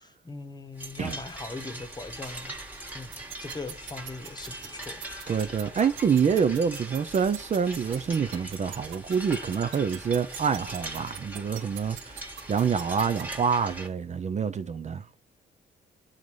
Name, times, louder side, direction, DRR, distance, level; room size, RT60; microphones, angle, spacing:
voice 1, 0.0-2.6 2.9-5.0, left 3 dB, 20° left, 1.0 m, -40 dB
sound 1, 0.8-13.9, right 1 dB, 10° right, 1.5 m, -41 dB
sound 2, 3.1-13.2, right 9 dB, 75° right, 1.0 m, -40 dB
voice 2, 5.3-15.0, right 6 dB, 35° right, 0.5 m, -27 dB
7.2 x 4.0 x 4.8 m
cardioid pair, 90°, 20 cm